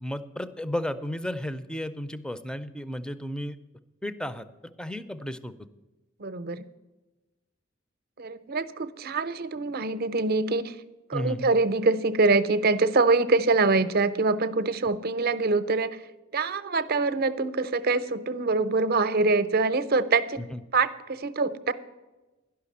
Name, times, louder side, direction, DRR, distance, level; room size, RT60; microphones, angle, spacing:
voice 1, 0.0-3.6 4.0-4.4 4.8-5.5 11.1-11.5 20.4-20.6, left 1 dB, 5° left, 12 dB, 0.5 m, -33 dB
voice 2, 6.2-6.6 8.2-10.7 11.1-16.0 16.3-20.4 20.7-21.7, right 3 dB, 50° right, 13 dB, 0.6 m, -24 dB
11.5 x 5.8 x 8.5 m, 1.1 s
head